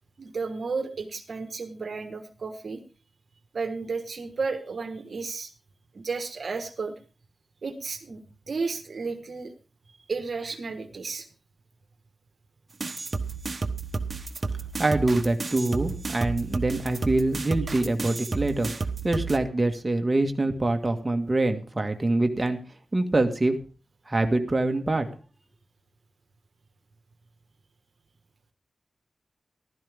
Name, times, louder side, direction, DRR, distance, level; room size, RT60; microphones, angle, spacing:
voice 1, 0.2-2.8 3.5-5.5 5.9-6.9 7.6-8.2 8.5-9.5 10.1-11.3, right 4 dB, 60° right, 7 dB, 1.5 m, -32 dB
sound 1, 12.8-19.4, right 4 dB, 45° right, 1.2 m, -32 dB
voice 2, 14.8-18.7 19.0-22.6 22.9-23.6 24.1-25.1, right 2 dB, 25° right, 4 dB, 1.8 m, -24 dB
15.0 x 12.5 x 3.6 m, 0.34 s
wide cardioid pair, 80°, 0 cm